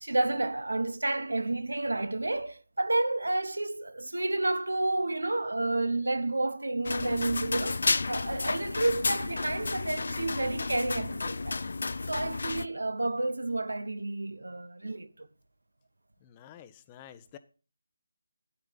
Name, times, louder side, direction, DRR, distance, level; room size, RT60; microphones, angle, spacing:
voice 1, 0.0-11.6 12.1-15.3, right 2 dB, 85° right, 0.9 m, -30 dB
sound 1, 6.9-12.7, left 3 dB, 60° left, 0.4 m, -32 dB
voice 2, 16.2-17.4, left 10 dB, 20° left, 0.7 m, -50 dB
10.0 x 9.5 x 4.0 m
figure-of-eight pair, 160°, 0 cm